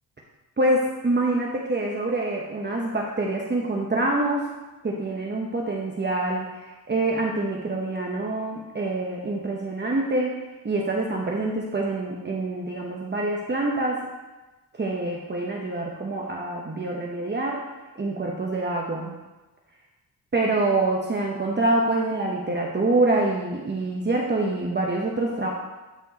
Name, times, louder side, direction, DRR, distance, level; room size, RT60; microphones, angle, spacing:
voice 1, 0.6-4.5 4.8-10.3 10.6-14.1 14.7-17.7 18.0-19.1 20.3-25.5, right 2 dB, 30° right, -1 dB, 1.0 m, -26 dB
12.5 x 4.4 x 4.1 m, 1.1 s
cardioid pair, 100°, 37 cm